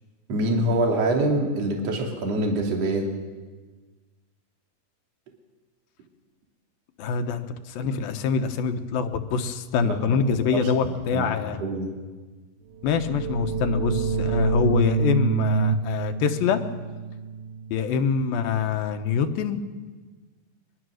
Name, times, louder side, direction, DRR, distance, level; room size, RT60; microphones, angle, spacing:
voice 1, 0.3-3.1 9.8-10.2 10.5-10.7 11.1-11.9, right 1 dB, 50° right, 0 dB, 3.7 m, -25 dB
voice 2, 7.0-11.6 12.8-16.6 17.7-19.6, left 6 dB, 90° left, 8 dB, 3.0 m, -25 dB
sound 1, 12.8-18.4, right 5 dB, 90° right, 2.8 m, -27 dB
23.0 x 22.0 x 6.4 m, 1.3 s
omnidirectional pair, 4.0 m